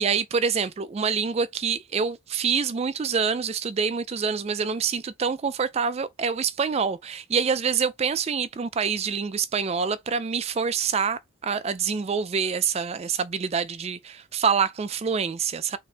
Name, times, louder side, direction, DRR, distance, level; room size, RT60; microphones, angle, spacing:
voice 1, 0.0-15.8, right 6 dB, 30° right, 0.3 m, -26 dB
4.2 x 3.5 x 3.4 m
head